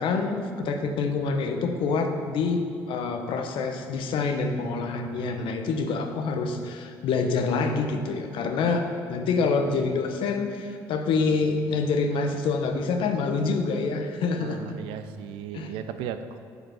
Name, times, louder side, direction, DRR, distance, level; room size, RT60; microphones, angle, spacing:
voice 1, 0.0-14.7 15.5-15.7, left 4 dB, 65° left, 5 dB, 0.7 m, -26 dB
voice 2, 14.4-16.4, right 8 dB, 75° right, 10 dB, 0.4 m, -36 dB
6.9 x 4.0 x 6.2 m, 2.3 s
hypercardioid pair, 55°, 9 cm